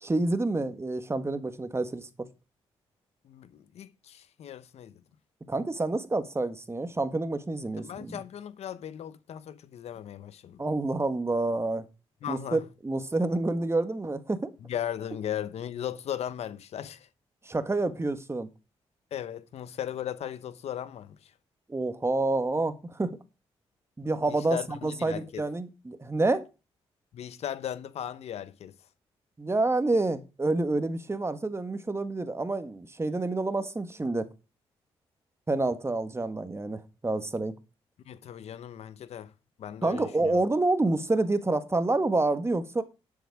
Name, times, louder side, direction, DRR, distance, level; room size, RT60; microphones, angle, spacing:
voice 1, 0.0-2.1 5.5-8.2 10.6-11.9 12.3-14.5 17.4-18.5 21.7-23.2 24.0-26.5 29.4-34.3 35.5-37.5 39.8-42.8, right 2 dB, 25° right, 1.7 m, -28 dB
voice 2, 3.2-5.0 7.8-10.6 12.2-12.6 14.6-17.1 19.1-21.3 24.3-25.4 27.1-28.7 38.1-39.3 39.6-40.4, left 10 dB, 75° left, 0.9 m, -37 dB
10.5 x 7.4 x 4.9 m
supercardioid pair, 60°, 11 cm